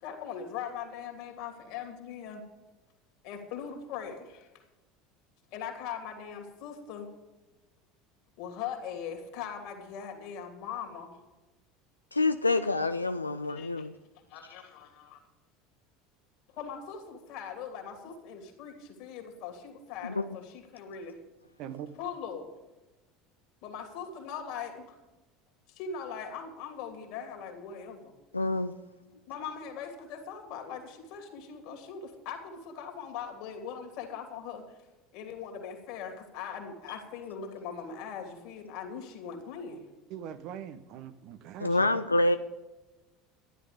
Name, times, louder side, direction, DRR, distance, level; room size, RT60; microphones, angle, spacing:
voice 1, 0.0-2.4 3.2-4.5 5.5-7.1 8.4-11.2 13.5-13.9 14.3-15.2 16.5-21.2 21.9-22.5 23.6-25.0 25.7-28.1 29.3-34.8 35.1-39.8, left 7 dB, 55° left, 2.9 m, -40 dB
voice 2, 12.1-13.9 20.0-20.3 28.3-28.7 41.6-42.4, left 2 dB, 90° left, 0.4 m, -27 dB
voice 3, 40.1-41.9, right 9 dB, 55° right, 0.9 m, -42 dB
13.0 x 11.0 x 5.2 m
figure-of-eight pair, 70°, 0 cm